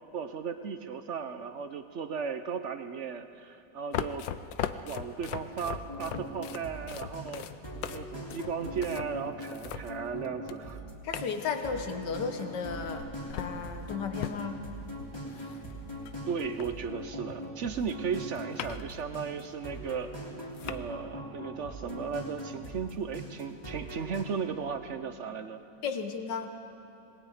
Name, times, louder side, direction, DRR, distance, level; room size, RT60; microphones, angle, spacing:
voice 1, 0.1-4.3 4.8-7.5 7.8-10.8 16.3-20.1 20.7-25.6, right 6 dB, 60° right, 9 dB, 0.7 m, -36 dB
sound 1, 3.9-10.8 11.1-12.1 12.8-17.0 17.3-19.0 19.4-19.5 20.1-20.2 20.5-20.8, left 10 dB, 85° left, 1.4 m, -40 dB
sound 2, 5.5-24.2, equal, 15° left, 3.1 m, -41 dB
voice 2, 11.0-14.6 25.8-26.5, left 5 dB, 70° left, 6 dB, 1.9 m, -34 dB
26.5 x 20.0 x 5.0 m, 2.9 s
omnidirectional pair, 2.0 m